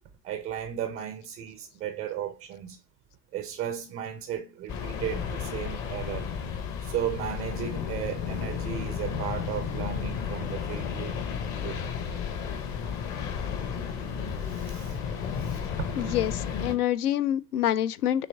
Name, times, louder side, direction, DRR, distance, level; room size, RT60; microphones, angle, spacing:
voice 1, 0.2-2.8 3.3-6.2 6.8-11.1 11.6-11.8 14.4-15.0 15.3-15.6 15.9-16.2, right 10 dB, 20° right, 0.4 m, -35 dB
sound 1, 4.7-16.8, left 6 dB, 35° left, 1.0 m, -33 dB
voice 2, 16.0-18.3, left 11 dB, 70° left, 0.5 m, -27 dB
6.3 x 3.0 x 2.7 m
figure-of-eight pair, 80°, 48 cm